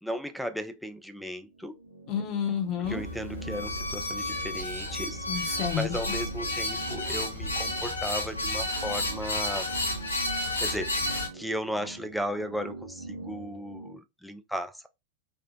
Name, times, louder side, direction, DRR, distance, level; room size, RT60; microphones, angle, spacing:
voice 1, 0.0-1.8 2.9-9.7 10.6-14.9, equal, ahead, 0.3 m, -36 dB
sound 1, 1.4-14.0, right 3 dB, 75° right, 1.0 m, -45 dB
voice 2, 2.1-3.0 5.3-5.9, left 8 dB, 35° left, 0.7 m, -30 dB
sound 2, 2.8-11.3, left 1 dB, 80° left, 0.7 m, -31 dB
3.0 x 2.0 x 2.5 m
figure-of-eight pair, 90°, 0 cm